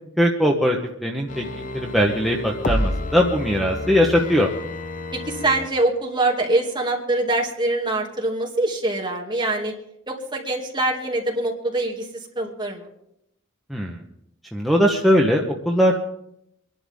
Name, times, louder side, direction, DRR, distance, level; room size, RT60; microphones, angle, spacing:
voice 1, 0.2-4.5 13.7-14.0 14.5-16.0, equal, ahead, 0 dB, 1.1 m, -20 dB
sound 1, 1.3-5.7 6.1-6.2, left 1 dB, 40° left, 0.9 m, -29 dB
voice 2, 5.3-9.7 10.1-12.1 12.4-12.9, right 2 dB, 20° right, -1 dB, 2.4 m, -24 dB
25.0 x 11.5 x 3.6 m, 0.78 s
head